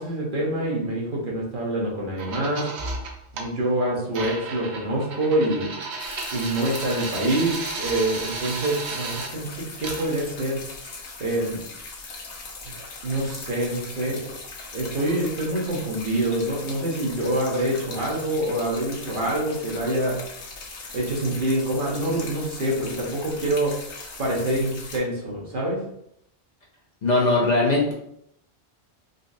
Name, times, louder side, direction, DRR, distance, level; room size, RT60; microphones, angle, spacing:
voice 1, 0.0-2.7 3.3-5.7 6.3-10.9 11.2-11.7 13.0-14.3 14.7-20.6 20.9-23.8 24.2-25.8, right 1 dB, 55° right, -3 dB, 1.0 m, -26 dB
sound 1, 2.2-3.5 4.1-9.3 9.8-10.1, right 3 dB, 85° right, 0.9 m, -33 dB
sound 2, 6.0-25.0, left 3 dB, 85° left, 1.0 m, -39 dB
voice 2, 27.0-27.9, left 2 dB, 50° left, -3 dB, 0.7 m, -20 dB
3.8 x 2.5 x 2.6 m, 0.73 s
omnidirectional pair, 1.1 m